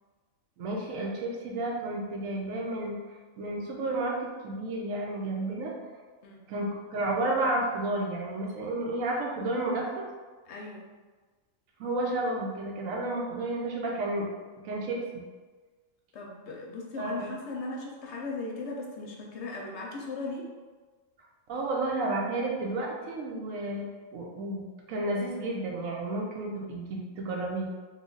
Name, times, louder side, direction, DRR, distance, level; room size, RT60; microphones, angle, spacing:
voice 1, 0.6-3.0 3.4-5.7 6.5-10.0 11.8-14.3 14.6-15.0 17.0-17.3 21.5-27.7, right 2 dB, 85° right, -1 dB, 1.1 m, -31 dB
voice 2, 10.4-10.8 16.1-20.5, left 3 dB, 65° left, -1 dB, 0.8 m, -37 dB
3.1 x 2.3 x 3.7 m, 1.4 s
omnidirectional pair, 1.4 m